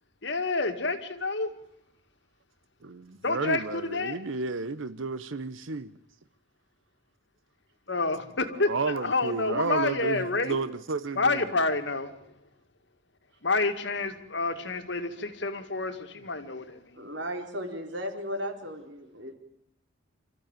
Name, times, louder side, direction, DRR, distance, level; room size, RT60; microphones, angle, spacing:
voice 1, 0.2-1.5 3.2-4.2 7.9-10.6 11.2-12.1 13.4-17.0, left 3 dB, 60° left, 2.0 m, -29 dB
voice 2, 2.8-5.9 8.5-11.5, right 4 dB, 80° right, 0.8 m, -32 dB
voice 3, 16.9-19.3, equal, 65° right, 4.1 m, -35 dB
27.0 x 14.0 x 9.0 m
head